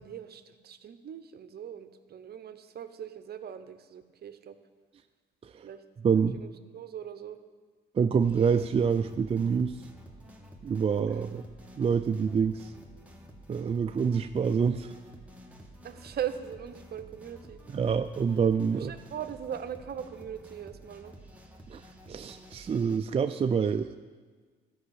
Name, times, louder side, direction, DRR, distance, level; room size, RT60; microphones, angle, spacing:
voice 1, 0.0-4.6 5.6-5.8 6.1-7.4 15.8-17.6 18.7-21.1, right 9 dB, 55° right, 10 dB, 0.8 m, -40 dB
voice 2, 6.0-6.4 8.0-9.8 10.6-11.4 11.8-12.7 13.5-14.9 17.7-18.9 21.7-21.8 22.1-24.0, right 6 dB, 30° right, 8 dB, 0.4 m, -26 dB
sound 1, 8.2-23.0, equal, 5° right, 1.5 m, -51 dB
13.0 x 5.5 x 8.1 m, 1.5 s
cardioid pair, 90°, 20 cm